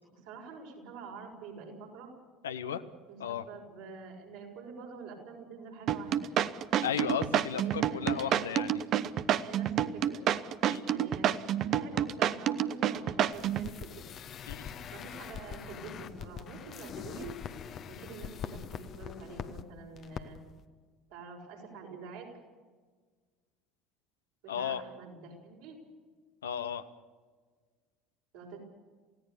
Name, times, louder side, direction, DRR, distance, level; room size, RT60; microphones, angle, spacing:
voice 1, 0.1-2.1 3.1-6.3 7.5-8.5 9.3-10.3 10.9-14.1 14.9-17.4 17.9-20.4 21.1-22.3 24.4-25.8 28.3-28.6, right 4 dB, 65° right, 0 dB, 6.3 m, -47 dB
voice 2, 2.4-2.8 3.2-3.5 6.8-8.8 10.7-10.9 14.5-14.7 24.5-24.8 26.4-26.8, left 8 dB, 75° left, 10 dB, 1.1 m, -34 dB
sound 1, 5.9-13.7, right 10 dB, 45° right, 0.9 m, -28 dB
sound 2, 13.3-19.6 20.0-20.2 20.5-20.6, left 8 dB, 45° left, 1.3 m, -43 dB
28.5 x 17.0 x 6.8 m, 1.5 s
figure-of-eight pair, 65°, 0 cm